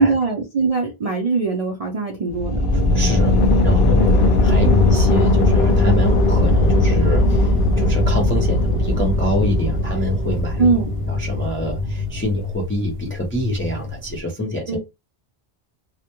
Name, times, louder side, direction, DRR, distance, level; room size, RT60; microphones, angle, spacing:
voice 1, 0.0-2.7 4.1-4.2 10.6-10.9 14.7-14.8, right 4 dB, 55° right, 0.4 m, -21 dB
sound 1, 2.3-12.3, left 1 dB, 60° left, 0.7 m, -18 dB
voice 2, 2.7-3.4 3.6-10.7 11.1-14.8, equal, 20° left, 0.3 m, -26 dB
sound 2, 2.7-14.2, left 5 dB, 85° right, 0.9 m, -27 dB
2.2 x 2.0 x 2.8 m
omnidirectional pair, 1.2 m